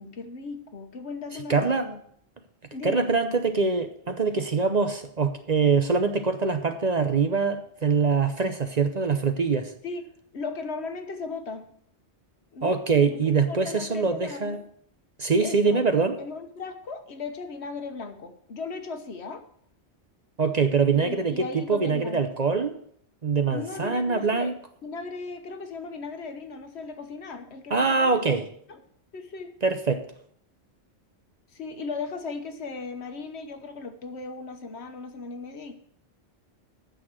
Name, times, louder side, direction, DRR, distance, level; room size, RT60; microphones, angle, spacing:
voice 1, 0.0-2.0 2.7-3.1 9.8-10.0 10.3-11.7 12.5-13.2 13.5-14.6 15.4-15.8 16.2-19.4 20.9-22.2 23.5-24.5 24.8-28.2 28.7-28.8 29.1-29.5 31.5-35.7, left 4 dB, 70° left, 7 dB, 1.4 m, -37 dB
voice 2, 1.5-1.9 2.8-9.7 12.6-14.6 15.2-16.2 20.4-22.8 23.2-24.6 27.7-28.5 29.6-30.1, right 4 dB, 40° right, 8 dB, 0.8 m, -24 dB
9.2 x 6.4 x 7.4 m, 0.66 s
omnidirectional pair, 1.2 m